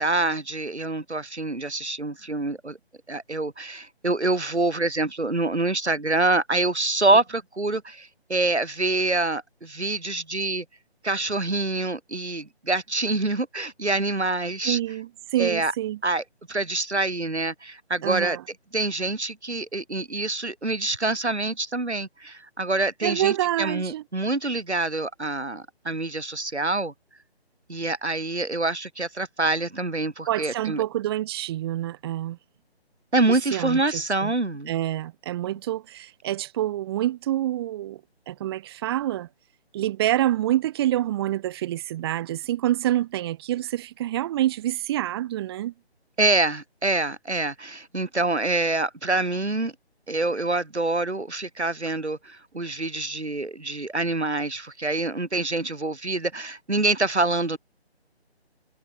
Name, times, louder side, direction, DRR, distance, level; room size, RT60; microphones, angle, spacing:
voice 1, 0.0-2.8 3.1-10.6 11.0-14.8 15.4-15.7 16.0-18.4 18.7-26.9 27.7-30.8 33.1-34.7 46.2-49.7 50.1-57.6, right 2 dB, 90° right, 5.6 m, -26 dB
voice 2, 14.6-16.0 18.0-18.4 23.0-24.0 30.3-32.4 33.3-34.3 34.7-38.0 38.3-39.3 39.7-45.7, right 13 dB, 25° right, 2.5 m, -27 dB
figure-of-eight pair, 155°, 33 cm